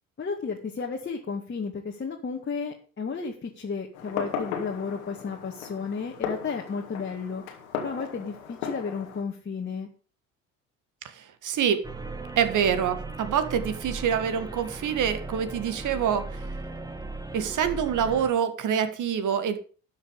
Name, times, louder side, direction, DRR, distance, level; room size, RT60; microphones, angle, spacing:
voice 1, 0.2-7.4 7.8-9.9, left 5 dB, 25° left, 1 dB, 2.0 m, -33 dB
Fireworks, 3.9-9.2, left 7 dB, 75° left, 2.0 m, -36 dB
voice 2, 11.0-11.8 12.4-16.5 17.3-19.6, right 8 dB, 45° right, 11 dB, 1.7 m, -26 dB
sound 1, 11.8-18.3, right 2 dB, 10° right, 1.6 m, -37 dB
12.5 x 6.5 x 6.6 m, 0.40 s
figure-of-eight pair, 55°, 41 cm